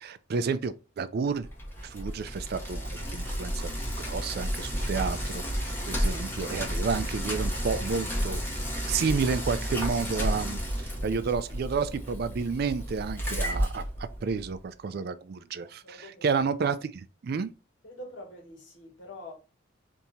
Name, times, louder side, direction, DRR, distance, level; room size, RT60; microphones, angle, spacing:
voice 1, 0.0-1.5 1.8-8.4 8.9-13.8 14.2-17.5, right 5 dB, 50° right, 0.3 m, -31 dB
Bicycle, 1.4-14.5, equal, 10° left, 1.0 m, -32 dB
voice 2, 15.8-16.3 17.8-19.3, left 1 dB, 70° left, 1.5 m, -45 dB
3.5 x 2.8 x 4.0 m
head